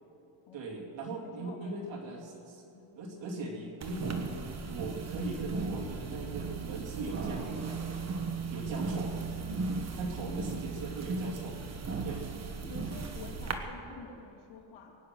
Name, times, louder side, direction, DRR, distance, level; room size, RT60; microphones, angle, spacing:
voice 1, 0.5-2.6 3.0-4.2 4.7-7.8 8.5-9.1 9.9-11.6 12.0-12.3, right 2 dB, 65° right, -1 dB, 3.0 m, -39 dB
voice 2, 1.4-1.8 2.7-3.0 8.5-8.8 10.2-10.6 12.6-15.0, left 5 dB, 80° left, 1 dB, 2.6 m, -49 dB
sound 1, 3.8-13.5, right 4 dB, 35° right, 1.3 m, -36 dB
23.0 x 9.4 x 6.3 m, 2.8 s
cardioid pair, 135°, 48 cm